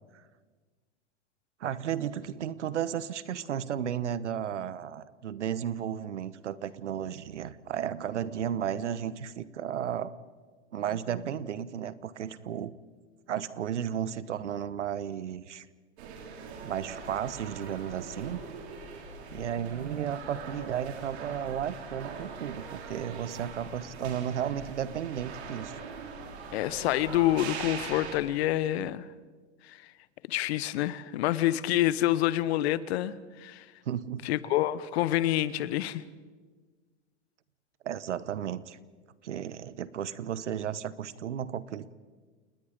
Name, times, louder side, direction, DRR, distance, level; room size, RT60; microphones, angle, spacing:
voice 1, 1.6-10.1 10.7-12.7 13.3-15.7 16.6-18.4 19.3-25.8 33.8-34.2 37.8-38.8 39.2-41.9, right 9 dB, 85° right, 17 dB, 1.1 m, -34 dB
sound 1, 16.0-28.2, right 5 dB, 65° right, 4.2 m, -42 dB
voice 2, 26.5-29.1 29.7-29.8 30.3-33.6 34.2-36.0, left 14 dB, 65° left, 17 dB, 1.1 m, -27 dB
29.0 x 19.5 x 5.2 m, 1.4 s
hypercardioid pair, 110°, 34 cm